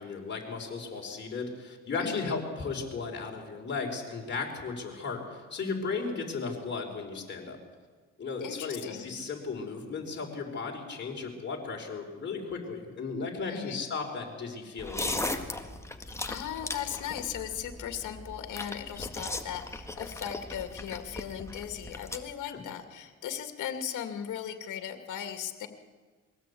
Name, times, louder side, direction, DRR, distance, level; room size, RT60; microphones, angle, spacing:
voice 1, 0.0-7.6 8.2-15.5 22.5-22.6, left 4 dB, 35° left, -1 dB, 5.4 m, -35 dB
voice 2, 2.0-2.4 8.4-9.1 13.5-13.8 16.3-25.7, left 9 dB, 80° left, 6 dB, 2.3 m, -37 dB
sound 1, 14.8-22.2, left 2 dB, 10° left, 1.9 m, -38 dB
23.0 x 17.0 x 8.6 m, 1.5 s
cardioid pair, 90°, 30 cm